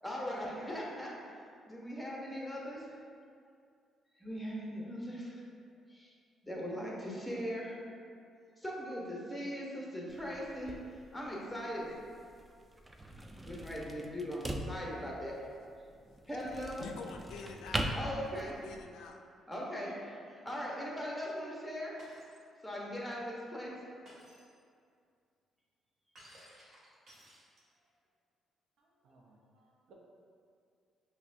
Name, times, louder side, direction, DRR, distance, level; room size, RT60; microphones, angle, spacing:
voice 1, 0.0-1.1 1.7-3.0 4.2-5.4 5.9-6.1 6.4-7.8 8.6-10.7 11.1-11.9 13.4-15.3 16.3-16.9 17.9-18.5 19.5-21.9 22.6-23.7, equal, 5° left, -4 dB, 0.8 m, -39 dB
sound 1, 10.1-18.8, right 1 dB, 15° right, 0.3 m, -42 dB
voice 2, 15.5-16.2 16.8-18.0 18.3-19.2, left 4 dB, 85° left, 3 dB, 0.3 m, -48 dB
Shatter, 22.0-22.4 24.1-24.5 26.2-27.9, equal, 55° right, 1.4 m, -57 dB
voice 3, 28.8-29.9, right 3 dB, 75° right, -2 dB, 0.6 m, -64 dB
5.5 x 2.2 x 2.6 m, 2.3 s
cardioid pair, 90°, 0 cm